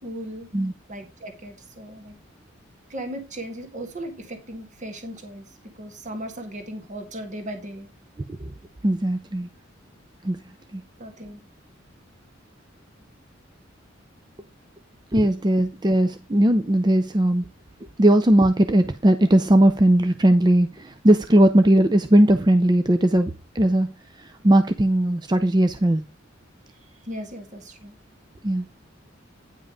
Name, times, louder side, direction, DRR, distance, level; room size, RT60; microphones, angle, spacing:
voice 1, 0.0-0.5 0.9-2.2 2.9-7.9 11.0-11.4 27.0-27.9, right 1 dB, 40° right, 1.8 m, -37 dB
voice 2, 8.8-9.5 10.2-10.4 10.7-10.8 15.1-17.5 18.0-23.9 24.2-26.0 28.4-28.7, right 1 dB, 20° right, 0.5 m, -18 dB
9.8 x 5.6 x 4.9 m
head